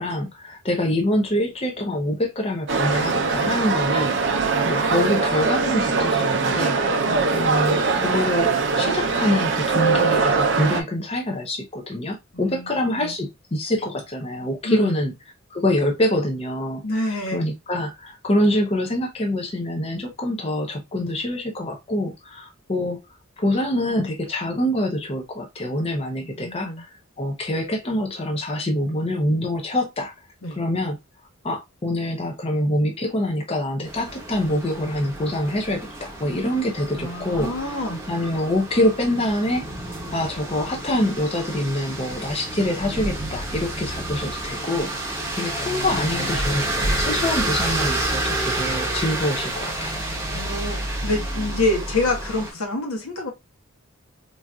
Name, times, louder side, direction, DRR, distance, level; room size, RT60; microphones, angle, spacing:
voice 1, 0.0-6.8 7.3-15.1 15.5-16.8 17.3-23.0 23.4-30.1 30.6-31.0 31.4-39.7 40.1-50.0, left 1 dB, 25° left, 0.5 m, -25 dB
sound 1, 2.7-10.8, right 4 dB, 55° right, 0.5 m, -21 dB
voice 2, 12.3-13.2 14.6-15.0 16.8-17.4 26.2-26.8 30.4-30.6 37.0-38.0 50.3-53.3, left 2 dB, 85° left, 1.0 m, -27 dB
sound 2, 33.9-52.5, right 1 dB, 15° right, 0.8 m, -29 dB
3.9 x 2.5 x 2.3 m
head